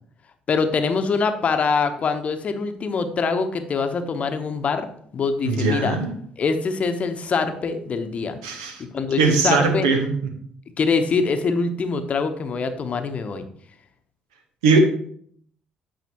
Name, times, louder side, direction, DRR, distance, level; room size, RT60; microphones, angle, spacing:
voice 1, 0.5-4.9 5.1-5.9 6.4-8.4 8.9-9.9 10.8-13.4, left 4 dB, 45° left, 8 dB, 0.8 m, -24 dB
voice 2, 5.4-6.1 8.4-8.8 9.2-10.0 14.6-14.8, right 4 dB, 85° right, 4 dB, 1.0 m, -19 dB
9.0 x 4.9 x 2.9 m, 0.62 s
hypercardioid pair, 50°, 3 cm